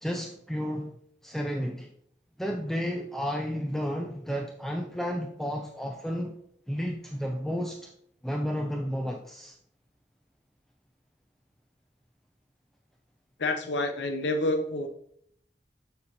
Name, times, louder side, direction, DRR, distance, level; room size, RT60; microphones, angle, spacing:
voice 1, 0.0-0.9 1.2-1.9 2.4-6.4 6.7-7.9 8.2-9.6, equal, ahead, 0.4 m, -32 dB
voice 2, 13.4-14.9, left 2 dB, 90° left, 0.7 m, -28 dB
6.7 x 6.7 x 2.9 m
head